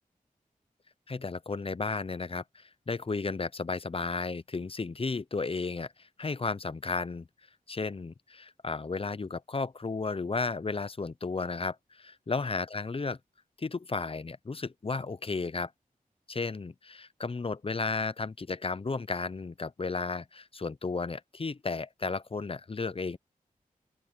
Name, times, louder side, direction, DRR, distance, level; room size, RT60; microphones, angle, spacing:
voice 1, 1.1-7.3 7.7-13.2 13.6-15.7 16.3-23.2, left 4 dB, 40° left, 0.6 m, -34 dB
open air
cardioid pair, 55°, 15 cm